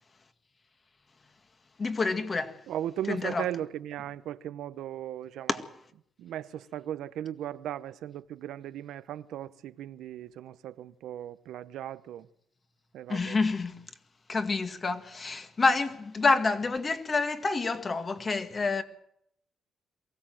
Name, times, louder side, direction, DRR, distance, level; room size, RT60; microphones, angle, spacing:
voice 1, 1.8-2.5 3.1-3.4 5.5-5.6 13.1-13.8 14.3-18.8, left 3 dB, 30° left, 2.0 m, -28 dB
voice 2, 2.7-5.6 6.2-12.3 12.9-13.4, right 11 dB, 85° right, 0.8 m, -37 dB
23.0 x 16.0 x 7.8 m
cardioid pair, 105°, 0 cm